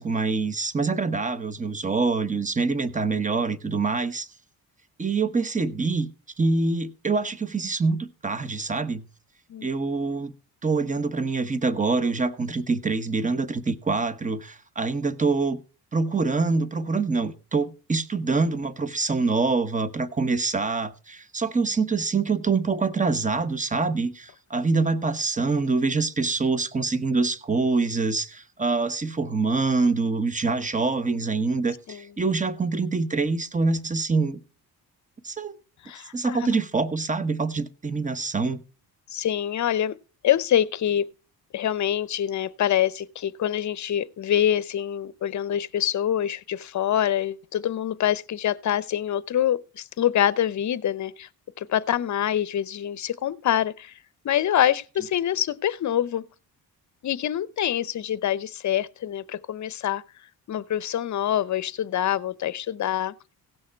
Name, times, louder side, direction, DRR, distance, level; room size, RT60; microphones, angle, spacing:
voice 1, 0.0-4.3 5.0-6.1 6.4-9.0 9.6-10.3 10.6-15.6 15.9-34.4 35.2-35.6 36.1-38.6, right 4 dB, 20° right, 1.0 m, -25 dB
voice 2, 35.8-36.6 39.1-39.9 40.2-41.0 41.5-51.3 51.6-53.9 54.2-56.2 57.0-60.0 60.5-63.1, left 10 dB, 50° left, 0.7 m, -25 dB
17.0 x 6.4 x 4.5 m
cardioid pair, 105°, 37 cm